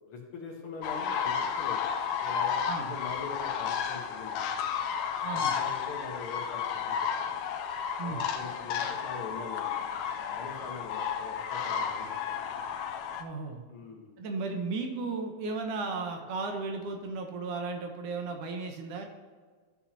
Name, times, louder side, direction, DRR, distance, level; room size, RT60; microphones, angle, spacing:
voice 1, 0.1-4.4 5.3-7.3 8.0-12.1 13.7-14.1, left 4 dB, 55° left, 0 dB, 1.8 m, -43 dB
sound 1, 0.8-13.2, left 7 dB, 75° left, 1.8 m, -32 dB
voice 2, 2.7-3.0 5.2-5.6 8.0-8.2 13.2-13.6 14.2-19.1, right 3 dB, 75° right, 4 dB, 2.4 m, -35 dB
13.0 x 8.1 x 2.9 m, 1.5 s
omnidirectional pair, 3.7 m